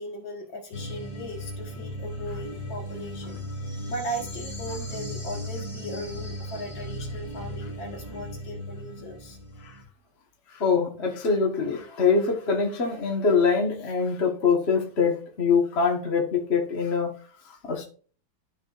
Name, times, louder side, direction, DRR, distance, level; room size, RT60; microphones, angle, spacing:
voice 1, 0.0-9.4, equal, 70° left, 2 dB, 2.4 m, -38 dB
sound 1, 0.7-9.8, equal, 50° left, 2.6 m, -36 dB
voice 2, 10.5-17.2 17.6-17.8, left 5 dB, 35° left, 0 dB, 1.5 m, -24 dB
13.5 x 4.8 x 2.5 m, 0.41 s
omnidirectional pair, 2.2 m